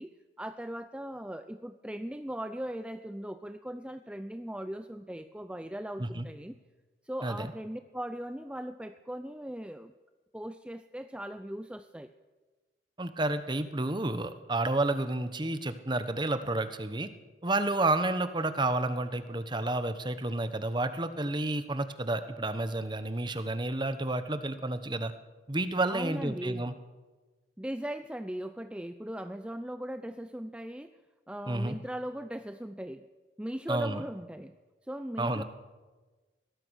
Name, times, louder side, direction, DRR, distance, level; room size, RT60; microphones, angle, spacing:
voice 1, 0.0-6.6 7.0-9.9 10.3-12.1 25.9-26.7 27.6-30.9 31.3-33.1 33.4-34.5 34.9-35.4, right 1 dB, 5° right, 9 dB, 0.6 m, -39 dB
voice 2, 13.0-17.1 17.4-25.1 25.5-26.7 31.5-31.8 33.7-34.0 35.2-35.4, right 2 dB, 25° right, 11 dB, 1.2 m, -30 dB
22.0 x 18.0 x 6.5 m, 1.3 s
head